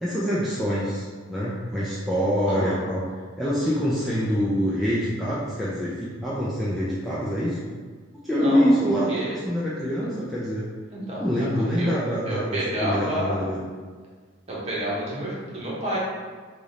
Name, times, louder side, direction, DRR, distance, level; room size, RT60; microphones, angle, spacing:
voice 1, 0.0-3.1 3.4-7.6 8.2-10.6 11.2-13.6, equal, ahead, -9 dB, 0.4 m, -25 dB
voice 2, 2.4-2.8 8.3-8.7 9.1-9.3 10.0-10.2 10.9-11.2 11.8-13.5 14.5-16.0, right 1 dB, 30° right, -6 dB, 1.0 m, -29 dB
3.3 x 2.4 x 4.0 m, 1.5 s
head